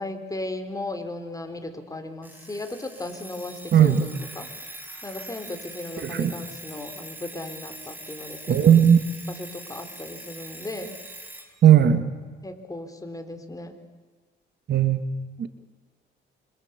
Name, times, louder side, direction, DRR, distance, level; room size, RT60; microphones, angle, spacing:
voice 1, 0.0-4.5 5.0-8.8 9.3-11.0 12.4-13.8, left 2 dB, 15° left, 7 dB, 4.3 m, -36 dB
Alarm, 2.2-11.5, right 1 dB, 10° right, 6.6 m, -42 dB
voice 2, 6.0-6.3 8.5-9.0 11.6-12.0 14.7-15.0 15.4-15.5, right 9 dB, 60° right, 9 dB, 2.3 m, -16 dB
26.5 x 26.5 x 8.4 m, 1.4 s
cardioid pair, 90°, 20 cm